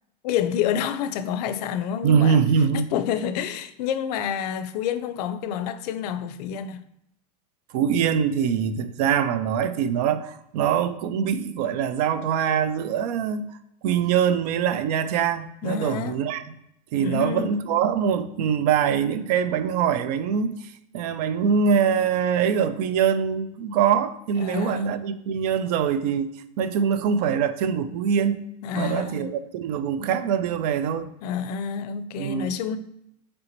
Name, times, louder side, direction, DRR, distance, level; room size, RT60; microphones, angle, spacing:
voice 1, 0.2-2.4 2.7-6.8 15.6-16.2 17.0-17.6 24.4-24.9 28.6-29.3 31.2-32.8, left 8 dB, 70° left, 0.4 m, -28 dB
voice 2, 2.0-2.8 7.7-13.5 13.8-16.4 16.9-20.5 20.9-26.3 26.6-28.4 28.7-31.1 32.2-32.5, right 7 dB, 70° right, 0.4 m, -23 dB
3.3 x 2.9 x 3.9 m
supercardioid pair, 130°, 21 cm